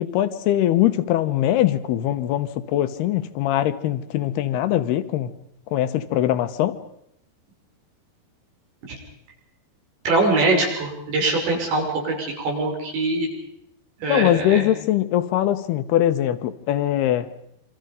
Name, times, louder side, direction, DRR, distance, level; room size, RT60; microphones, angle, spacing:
voice 1, 0.0-5.4 5.7-6.8 14.1-17.3, left 12 dB, 75° left, 11 dB, 2.9 m, -22 dB
voice 2, 10.1-13.3 14.0-14.6, right 2 dB, 80° right, 0 dB, 8.4 m, -22 dB
27.5 x 25.5 x 5.3 m, 0.76 s
omnidirectional pair, 5.0 m